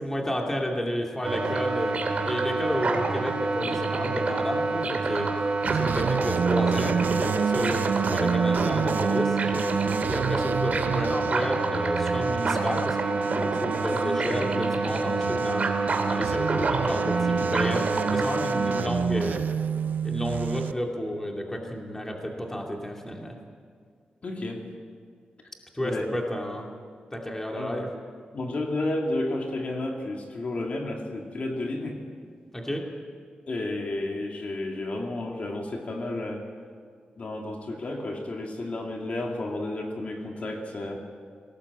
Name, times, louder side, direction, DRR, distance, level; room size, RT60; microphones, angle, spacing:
voice 1, 0.0-2.0 2.2-5.4 5.7-9.4 10.1-13.3 13.6-15.7 16.1-19.4 20.0-23.4 25.7-26.7 27.1-27.9 32.5-32.9, equal, 15° left, 1 dB, 2.5 m, -31 dB
sound 1, 1.2-18.8, right 3 dB, 45° right, 2.8 m, -27 dB
sound 2, 5.6-20.7, right 7 dB, 85° right, 0.5 m, -29 dB
voice 2, 24.2-24.7 25.8-26.0 27.5-27.8 28.3-32.0 33.5-36.5 37.2-41.0, left 2 dB, 50° left, 1 dB, 2.5 m, -31 dB
20.5 x 18.0 x 8.3 m, 2.1 s
wide cardioid pair, 150°, 3 cm